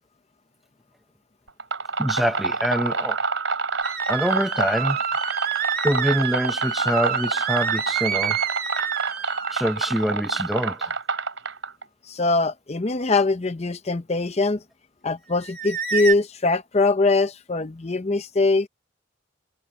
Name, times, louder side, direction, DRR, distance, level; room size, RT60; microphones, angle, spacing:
sound 1, 1.5-11.8, right 4 dB, 75° right, 4.0 m, -27 dB
voice 1, 2.0-3.2 4.1-5.0 5.5-8.4 9.5-11.0, equal, ahead, 0.8 m, -25 dB
sound 2, 3.8-9.8 15.4-16.1, right 7 dB, 50° right, 2.7 m, -28 dB
voice 2, 12.1-14.6 15.0-18.7, left 3 dB, 35° left, 0.6 m, -22 dB
head